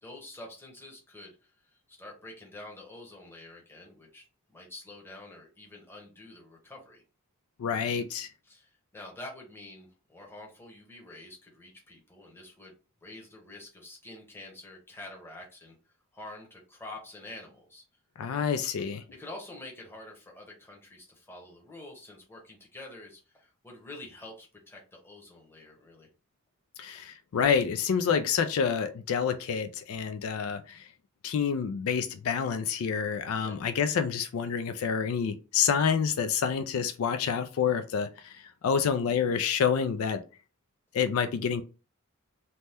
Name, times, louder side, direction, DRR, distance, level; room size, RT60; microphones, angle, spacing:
voice 1, 0.0-1.3 1.9-4.2 4.5-7.0 8.4-12.7 13.0-15.8 16.1-17.8 19.1-26.1 33.3-33.6, left 2 dB, 10° left, 0.9 m, -47 dB
voice 2, 7.6-8.3 18.2-19.0 26.8-30.9 31.2-40.2 40.9-41.6, left 7 dB, 70° left, 0.3 m, -28 dB
2.8 x 2.1 x 3.3 m
head